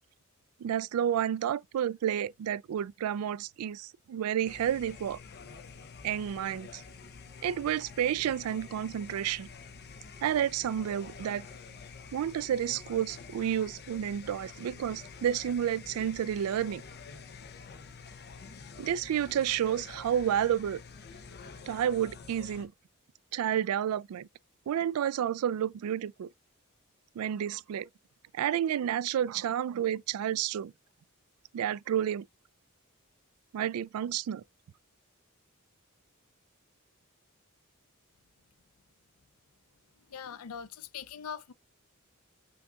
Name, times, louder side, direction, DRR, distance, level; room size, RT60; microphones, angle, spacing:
voice 1, 0.6-5.2 6.0-6.8 7.4-9.5 10.2-11.5 12.1-16.8 18.8-20.8 21.7-22.7 23.3-24.3 24.7-26.3 27.2-27.9 28.3-30.7 31.5-32.2 33.5-34.4, right 9 dB, 80° right, 0.3 m, -30 dB
sound 1, 4.4-22.7, left 5 dB, 50° left, 0.7 m, -48 dB
voice 2, 40.1-41.5, left 7 dB, 90° left, 0.5 m, -41 dB
5.7 x 3.9 x 2.4 m
head